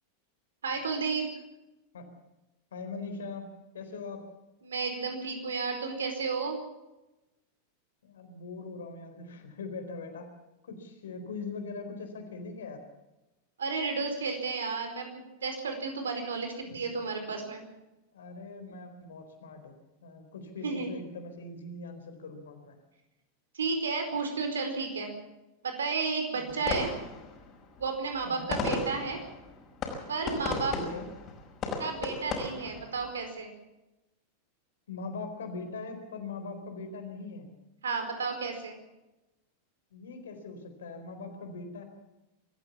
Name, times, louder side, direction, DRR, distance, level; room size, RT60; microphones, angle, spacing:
voice 1, 0.6-1.3 4.6-6.6 13.6-17.6 20.6-20.9 23.5-25.1 25.6-26.9 27.8-29.2 30.1-30.7 31.8-33.5 37.8-38.8, right 4 dB, 70° right, 6 dB, 4.7 m, -32 dB
voice 2, 2.7-3.5 3.7-4.2 8.0-10.3 10.6-12.8 16.7-16.9 18.1-19.8 20.0-22.8 26.3-26.6 28.2-28.5 30.7-31.1 34.9-37.5 39.9-41.8, left 3 dB, 65° left, 6 dB, 4.3 m, -41 dB
sound 1, 26.5-33.2, left 4 dB, 30° left, 5.6 m, -36 dB
24.5 x 15.0 x 7.2 m, 0.99 s
figure-of-eight pair, 90°, 0 cm